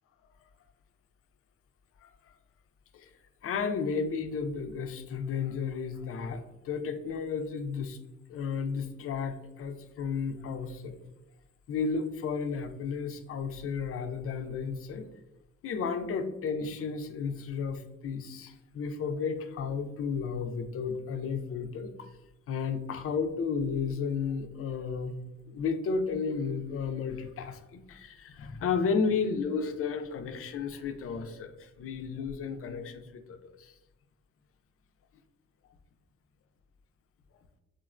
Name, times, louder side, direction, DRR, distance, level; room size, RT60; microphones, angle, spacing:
voice 1, 3.4-8.0 8.3-11.0 11.7-15.1 15.6-21.9 22.5-25.1 25.5-33.7, left 5 dB, 50° left, 7 dB, 0.4 m, -33 dB
3.6 x 2.1 x 2.4 m, 0.97 s
cardioid pair, 90°, 30 cm